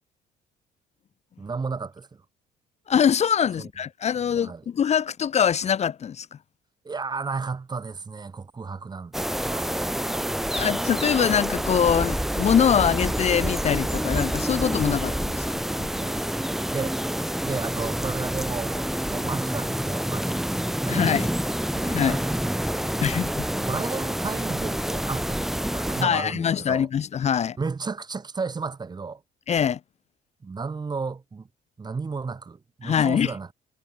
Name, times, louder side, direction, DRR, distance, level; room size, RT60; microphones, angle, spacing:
voice 1, 1.4-2.2 3.6-3.7 4.3-4.6 6.8-10.5 10.9-11.3 15.9-16.3 16.7-17.0 17.4-20.4 20.8-21.3 21.7-22.5 23.0-23.1 23.5-26.9 27.6-29.2 30.4-31.5 31.8-33.5, right 4 dB, 25° right, 2.6 m, -34 dB
voice 2, 2.9-6.3 10.5-15.4 15.8-15.9 20.9-21.3 21.9-22.2 23.0-23.5 26.0-27.6 29.5-29.8 32.8-33.3, left 8 dB, 40° left, 1.1 m, -23 dB
sound 1, 9.1-26.0, equal, ahead, 0.4 m, -27 dB
cardioid pair, 110°, 17 cm